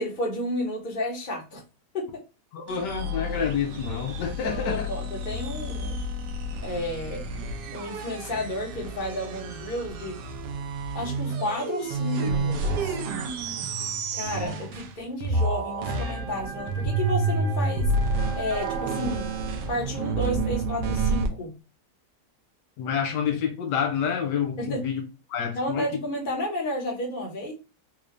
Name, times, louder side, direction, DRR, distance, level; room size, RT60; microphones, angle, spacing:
voice 1, 0.0-1.6 1.9-2.2 4.4-6.0 6.6-7.2 7.7-10.2 10.9-12.9 14.1-17.9 18.4-19.3 19.7-21.6 24.6-24.9 25.5-27.5, left 1 dB, 30° left, 1.2 m, -32 dB
voice 2, 2.5-4.9 22.8-25.0 25.3-25.9, left 7 dB, 80° left, 1.3 m, -28 dB
sound 1, 2.7-15.0 15.2-21.3, right 2 dB, 80° right, 1.3 m, -29 dB
sound 2, 15.8-20.3, right 3 dB, 50° right, 1.3 m, -40 dB
3.8 x 2.5 x 3.2 m
omnidirectional pair, 1.9 m